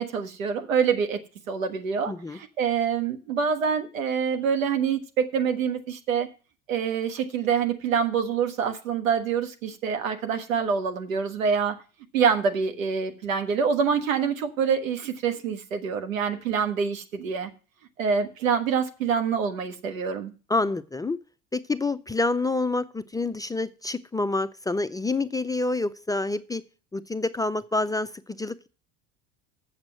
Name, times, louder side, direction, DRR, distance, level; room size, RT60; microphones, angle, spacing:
voice 1, 0.0-6.3 6.7-11.8 12.1-17.5 18.0-20.3, right 6 dB, 85° right, 1.5 m, -26 dB
voice 2, 2.1-2.4 20.5-21.2 21.5-26.6 26.9-28.7, left 2 dB, 10° left, 0.4 m, -27 dB
7.4 x 7.2 x 7.5 m
hypercardioid pair, 80°, 39 cm